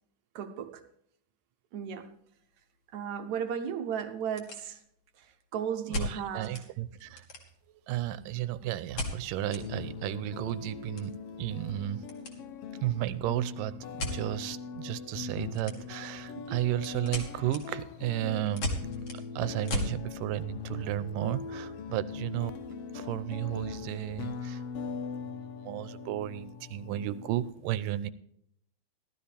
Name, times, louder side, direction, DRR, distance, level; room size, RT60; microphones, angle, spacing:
voice 1, 0.4-0.8 1.7-2.1 2.9-4.8 5.2-5.3 5.5-6.6 16.5-16.7, right 8 dB, 70° right, 2.0 m, -35 dB
sound 1, 1.9-2.1 2.4-2.5 3.1-3.2 3.5-3.6 4.1-5.1 5.9-6.7 7.0-7.8 9.0-9.6 10.0-10.1 10.4-12.4 12.6-12.9 14.0-14.2 15.5-16.1 16.4-20.0, left 1 dB, 50° left, 2.9 m, -36 dB
voice 2, 5.9-7.3 7.9-12.1 12.7-18.8 19.1-22.5 22.9-24.6 25.6-28.1, right 13 dB, 85° right, 2.3 m, -33 dB
sound 2, 9.4-27.5, left 5 dB, 75° left, 1.4 m, -41 dB
15.0 x 13.0 x 3.4 m
omnidirectional pair, 3.8 m